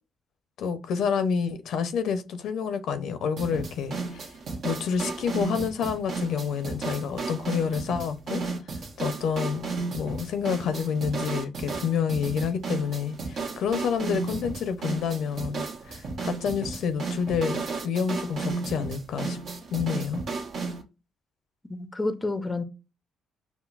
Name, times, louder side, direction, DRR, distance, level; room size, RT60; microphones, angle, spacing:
voice 1, 0.6-4.3 4.6-8.4 9.0-19.4 19.7-20.2, left 6 dB, 75° left, 0.6 m, -28 dB
sound 1, 3.4-20.8, right 4 dB, 60° right, 1.1 m, -33 dB
voice 2, 21.7-22.6, left 2 dB, 15° left, 0.5 m, -29 dB
5.8 x 2.0 x 2.4 m
cardioid pair, 90°, 0 cm